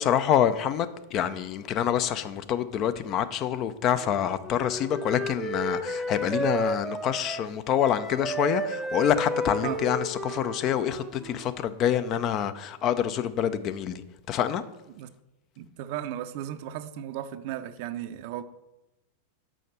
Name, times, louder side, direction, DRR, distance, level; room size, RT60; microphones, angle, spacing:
voice 1, 0.0-14.0 14.3-14.6, left 9 dB, 35° left, 0.5 m, -26 dB
Wind instrument woodwind instrument, 4.0-11.6, right 1 dB, 5° right, 0.8 m, -33 dB
voice 2, 15.6-18.4, right 11 dB, 45° right, 0.5 m, -35 dB
6.3 x 5.7 x 6.7 m
figure-of-eight pair, 90°, 0 cm